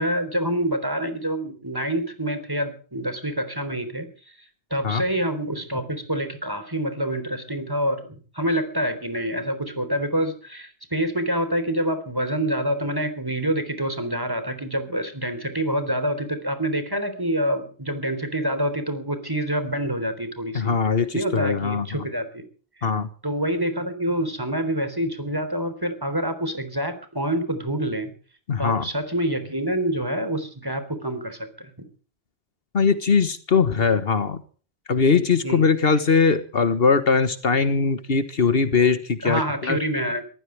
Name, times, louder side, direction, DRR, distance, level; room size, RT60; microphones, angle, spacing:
voice 1, 0.0-4.3 4.7-20.7 21.1-22.4 22.8-22.9 23.2-28.1 28.6-31.7 35.4-35.7 39.2-40.2, right 1 dB, 20° right, 9 dB, 3.8 m, -27 dB
voice 2, 20.5-22.0 22.8-23.1 28.5-28.8 32.7-34.4 34.9-39.8, left 5 dB, 70° left, 12 dB, 1.6 m, -21 dB
23.0 x 15.5 x 3.4 m, 0.40 s
omnidirectional pair, 1.0 m